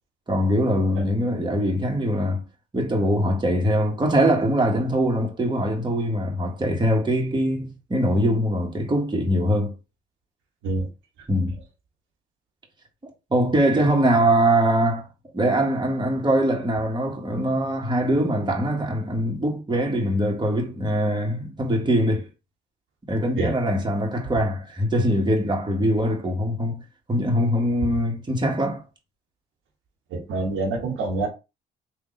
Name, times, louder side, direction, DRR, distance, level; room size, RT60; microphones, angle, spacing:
voice 1, 0.3-2.4 2.7-9.7 11.3-11.6 13.3-15.1 15.3-22.3 23.1-26.8 27.1-28.8, equal, 20° right, 1.6 m, -22 dB
voice 2, 30.1-31.3, right 3 dB, 75° right, 1.6 m, -26 dB
3.7 x 2.8 x 3.8 m
supercardioid pair, 65°, 20 cm